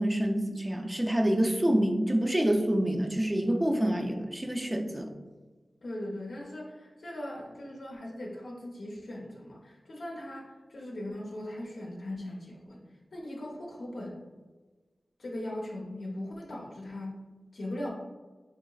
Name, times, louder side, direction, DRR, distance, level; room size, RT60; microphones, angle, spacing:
voice 1, 0.0-5.1, right 1 dB, 15° right, 2 dB, 0.4 m, -27 dB
voice 2, 5.8-12.8 13.1-14.2 15.2-17.2 17.5-17.9, left 1 dB, 80° left, -3 dB, 0.6 m, -39 dB
4.1 x 2.9 x 2.3 m, 1.3 s
wide cardioid pair, 75°, 0 cm